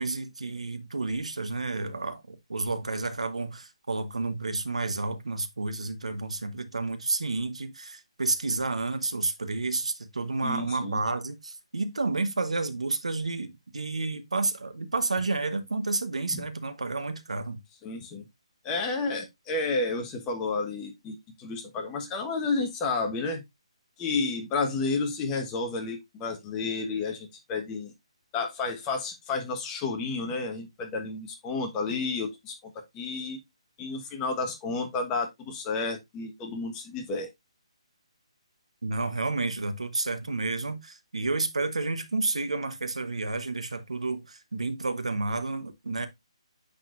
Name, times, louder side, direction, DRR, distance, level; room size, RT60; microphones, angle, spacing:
voice 1, 0.0-17.6 38.8-46.1, right 3 dB, 90° right, 1.1 m, -30 dB
voice 2, 10.4-11.0 16.3-16.4 17.8-18.2 18.6-23.4 24.0-27.9 28.3-33.4 33.8-37.3, left 3 dB, 20° left, 1.3 m, -31 dB
9.6 x 4.1 x 2.5 m
hypercardioid pair, 155°, 3 cm